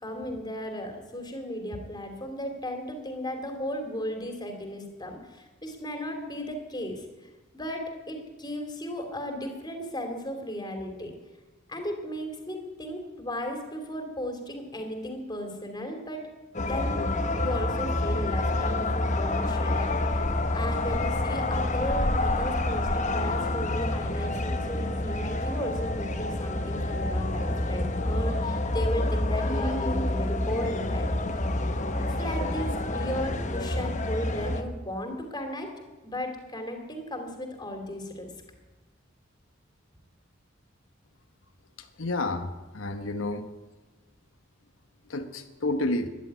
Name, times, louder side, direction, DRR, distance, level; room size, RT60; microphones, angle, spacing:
voice 1, 0.0-7.1 7.5-11.1 11.7-16.2 16.6-17.0 17.3-20.2 20.5-31.5 32.2-35.7 36.0-38.3, equal, 20° left, 4 dB, 2.8 m, -35 dB
sound 1, 16.5-34.6, left 2 dB, 40° left, 1.2 m, -28 dB
voice 2, 41.8-43.5 45.0-46.1, left 2 dB, 85° left, 6 dB, 1.2 m, -30 dB
13.5 x 11.0 x 9.4 m, 1.1 s
head